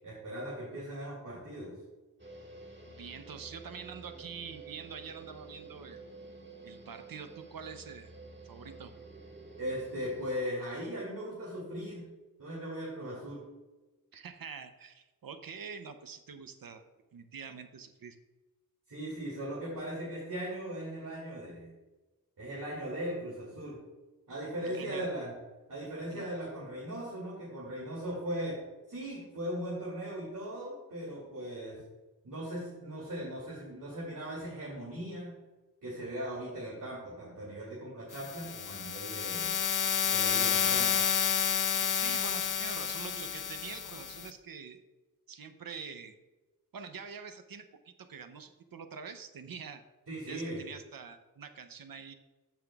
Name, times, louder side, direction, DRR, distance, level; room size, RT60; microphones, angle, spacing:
voice 1, 0.0-1.7 9.6-12.1 12.4-13.4 18.9-21.7 22.4-23.8 24.3-25.3 25.7-28.6 28.9-31.8 32.2-35.4 35.8-39.5 40.1-40.9 50.1-50.6, equal, 70° right, -6 dB, 2.6 m, -38 dB
sound 1, 2.2-10.4, right 3 dB, 35° right, 1.6 m, -50 dB
voice 2, 2.9-6.0 6.6-8.1 8.5-8.9 14.1-16.8 17.1-18.2 24.6-25.1 26.1-26.3 41.9-44.8 45.3-46.1 46.7-49.8 50.3-52.1, right 6 dB, 90° right, 8 dB, 0.7 m, -45 dB
sound 2, 38.1-44.3, left 8 dB, 65° left, 0.6 m, -30 dB
14.5 x 5.7 x 2.4 m, 1.2 s
wide cardioid pair, 85°, 34 cm